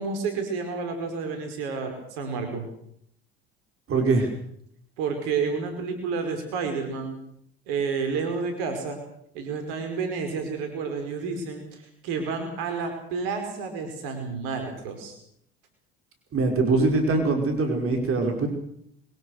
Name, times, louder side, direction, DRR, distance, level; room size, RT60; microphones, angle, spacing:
voice 1, 0.0-2.7 5.0-7.1 7.7-9.0 9.3-15.1, right 5 dB, 70° right, 5 dB, 5.1 m, -30 dB
voice 2, 3.9-4.3 16.3-18.5, right 3 dB, 45° right, 4 dB, 5.3 m, -23 dB
23.0 x 22.0 x 6.5 m, 0.68 s
hypercardioid pair, 70°, 31 cm